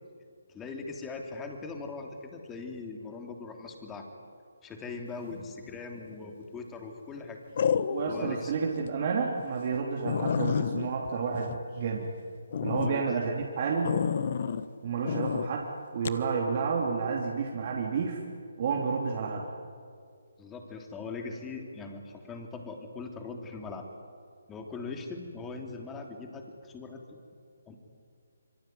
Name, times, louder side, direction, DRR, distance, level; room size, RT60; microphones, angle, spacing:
voice 1, 0.5-4.1 4.6-7.4 8.1-8.5 12.7-13.0 20.4-23.9 24.5-27.2 27.7-27.8, left 4 dB, 10° left, 3 dB, 3.2 m, -40 dB
sound 1, 6.0-6.4 7.6-8.3 8.8-8.9 9.4-9.5 9.7-9.8 10.0-12.1 12.5-12.9 13.8-14.6 15.0-15.5 16.0-16.2, left 7 dB, 50° left, 1.2 m, -30 dB
voice 2, 7.9-12.1 12.6-14.0 14.8-18.2 18.6-19.5, right 5 dB, 40° right, -1 dB, 3.4 m, -30 dB
26.0 x 24.0 x 9.5 m, 2.3 s
figure-of-eight pair, 150°, 0 cm